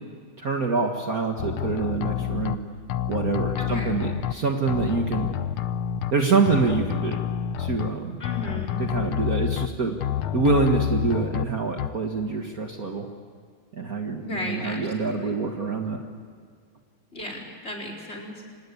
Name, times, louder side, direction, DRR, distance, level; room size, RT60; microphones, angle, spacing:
voice 1, 0.4-2.6 3.1-5.3 6.1-7.2 7.6-8.2 8.8-10.0 10.3-13.1 13.7-16.0, right 4 dB, 45° right, 3 dB, 2.0 m, -25 dB
sound 1, 1.4-2.6 2.9-4.3 4.7-6.1 6.5-7.9 8.2-9.7 10.0-11.4 11.8-11.9, left 11 dB, 85° left, 1.7 m, -28 dB
voice 2, 3.6-3.9 8.2-8.8 14.2-15.4 17.1-18.5, left 1 dB, 30° left, 1 dB, 4.9 m, -35 dB
26.0 x 19.5 x 8.5 m, 2.1 s
omnidirectional pair, 2.3 m